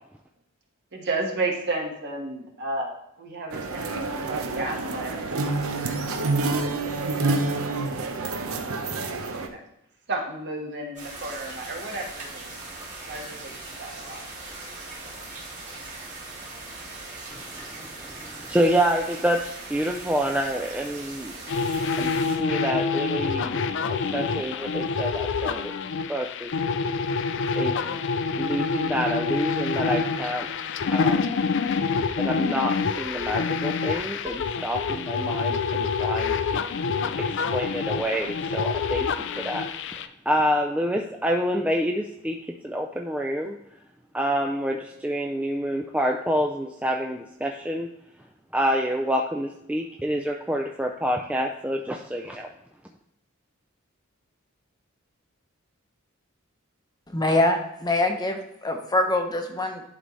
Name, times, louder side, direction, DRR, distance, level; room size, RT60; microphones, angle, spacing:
voice 1, 0.9-8.3 9.4-9.6 10.1-12.5 13.1-14.3, right 2 dB, 55° right, 0 dB, 1.4 m, -33 dB
sound 1, 3.5-9.5, right 3 dB, 85° right, 0.8 m, -28 dB
sound 2, 11.0-22.4, right 2 dB, 35° right, 2.2 m, -40 dB
voice 2, 17.3-17.7 18.0-21.3 22.0-22.1 22.4-23.6 23.9-25.7 26.1-26.5 27.6-27.8 28.4-30.5 30.9-31.3 32.2-36.7 37.2-39.1 39.4-39.7 40.3-42.4 42.6-43.6 44.1-47.9 48.5-52.5, equal, 5° right, 2 dB, 0.3 m, -27 dB
sound 3, 21.5-40.1, left 5 dB, 60° left, 0.4 m, -27 dB
voice 3, 57.1-59.8, left 2 dB, 20° left, 4 dB, 0.8 m, -24 dB
11.0 x 4.0 x 3.2 m, 0.81 s
head